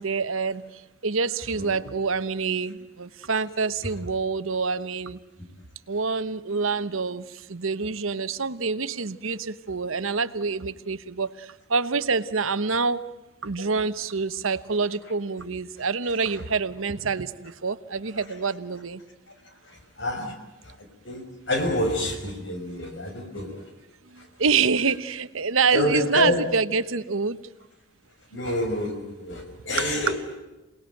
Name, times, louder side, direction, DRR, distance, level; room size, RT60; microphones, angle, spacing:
voice 1, 0.0-5.2 5.9-13.0 13.4-19.0 24.1-27.4, right 4 dB, 80° right, 13 dB, 1.1 m, -27 dB
voice 2, 19.4-20.4 20.6-23.6 24.2-24.3 25.7-26.4 28.3-30.4, left 1 dB, 60° left, 5 dB, 5.1 m, -28 dB
28.0 x 19.5 x 9.1 m, 1.1 s
head